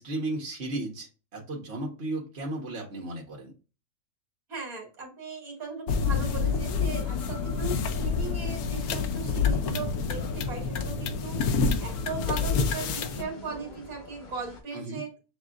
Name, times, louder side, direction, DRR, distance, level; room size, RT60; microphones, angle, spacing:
voice 1, 0.0-3.5 14.7-15.0, right 2 dB, 45° right, -1 dB, 1.5 m, -35 dB
voice 2, 4.5-15.1, right 4 dB, 65° right, 0 dB, 1.9 m, -38 dB
sound 1, 5.9-13.2, left 5 dB, 75° left, 1.1 m, -28 dB
sound 2, 6.4-14.6, left 2 dB, 35° left, 1.1 m, -47 dB
7.0 x 2.4 x 2.4 m, 0.31 s
omnidirectional pair, 1.6 m